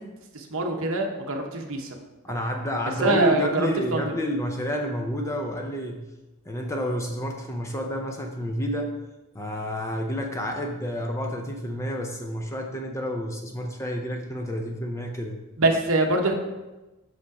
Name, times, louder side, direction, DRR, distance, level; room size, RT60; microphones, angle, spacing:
voice 1, 0.3-1.9 3.0-4.0 15.6-16.3, right 2 dB, 65° right, 3 dB, 1.0 m, -24 dB
voice 2, 2.2-6.0 6.5-8.9 9.3-15.4, equal, 15° left, 2 dB, 0.6 m, -29 dB
6.5 x 5.3 x 4.7 m, 1.1 s
head